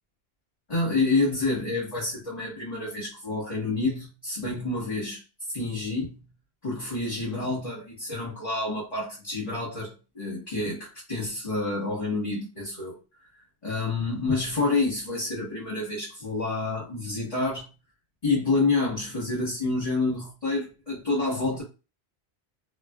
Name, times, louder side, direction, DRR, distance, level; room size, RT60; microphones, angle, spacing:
voice 1, 0.7-5.2 5.5-6.3 6.6-13.3 13.6-17.7 18.2-21.6, left 3 dB, 35° left, 1.3 m, -28 dB
2.6 x 2.4 x 2.2 m
omnidirectional pair, 1.2 m